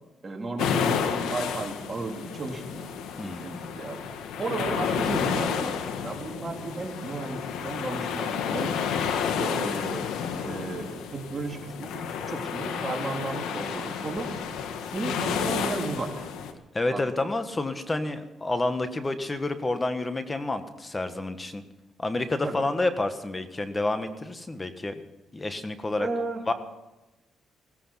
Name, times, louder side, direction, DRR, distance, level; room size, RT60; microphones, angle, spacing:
voice 1, 0.2-2.9 3.2-4.0 4.4-8.7 9.4-10.0 10.4-14.3 14.8-16.3 16.9-17.3 22.4-22.6 25.9-26.4, right 3 dB, 25° right, 1 dB, 3.3 m, -34 dB
sound 1, 0.6-16.5, left 7 dB, 90° left, 1.5 m, -31 dB
voice 2, 16.7-21.6 22.0-25.0 25.3-26.1 26.5-26.6, left 2 dB, 20° left, 9 dB, 1.4 m, -29 dB
16.5 x 15.0 x 5.7 m, 1.0 s
cardioid pair, 90°, 0 cm